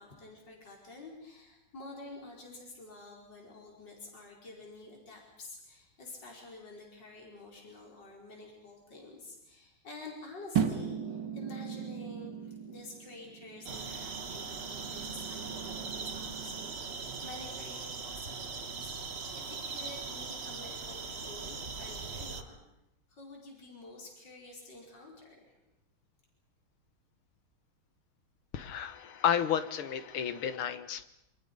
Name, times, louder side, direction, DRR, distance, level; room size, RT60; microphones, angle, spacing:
voice 1, 0.0-22.6 23.1-25.6, left 2 dB, 55° left, -1 dB, 5.4 m, -49 dB
sound 1, 10.5-16.8, right 7 dB, 65° right, 2.3 m, -38 dB
sound 2, 13.6-22.4, right 4 dB, 35° right, 1.3 m, -40 dB
voice 2, 28.5-31.1, left 9 dB, 90° left, 12 dB, 2.1 m, -32 dB
28.0 x 25.5 x 5.3 m, 0.83 s
omnidirectional pair, 2.3 m